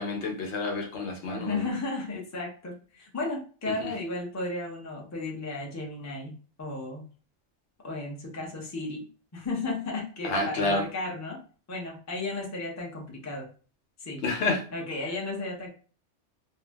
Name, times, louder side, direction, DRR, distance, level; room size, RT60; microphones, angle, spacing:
voice 1, 0.0-1.7 3.7-3.9 10.2-10.9 14.2-14.6, left 2 dB, 75° left, 2 dB, 1.0 m, -29 dB
voice 2, 1.3-7.0 7.8-9.1 9.3-11.4 11.7-13.5 14.0-14.2 14.7-15.7, left 2 dB, 20° left, -1 dB, 0.5 m, -34 dB
2.5 x 2.0 x 3.3 m, 0.39 s
omnidirectional pair, 1.2 m